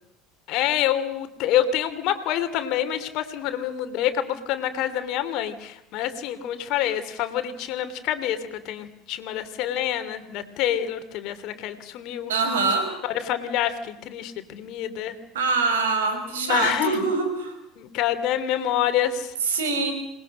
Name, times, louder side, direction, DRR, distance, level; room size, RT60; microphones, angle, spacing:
voice 1, 0.5-12.3 13.0-15.2 16.3-17.0 17.8-19.3, left 11 dB, 60° left, 9 dB, 3.0 m, -27 dB
voice 2, 12.3-12.9 15.3-17.5 19.4-19.9, right 4 dB, 80° right, 6 dB, 5.9 m, -24 dB
28.0 x 20.5 x 6.5 m, 0.84 s
hypercardioid pair, 70°, 0 cm